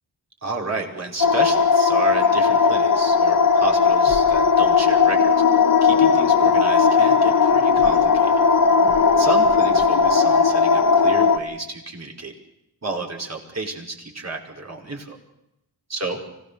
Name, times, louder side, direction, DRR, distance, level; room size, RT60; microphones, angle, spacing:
voice 1, 0.4-5.3 5.8-8.3 9.1-12.3 12.8-15.2 15.9-16.2, right 3 dB, 40° right, 1 dB, 5.2 m, -31 dB
sound 1, 1.2-11.4, left 5 dB, 55° left, 1.7 m, -17 dB
25.0 x 17.5 x 7.0 m, 0.90 s
cardioid pair, 75°, 39 cm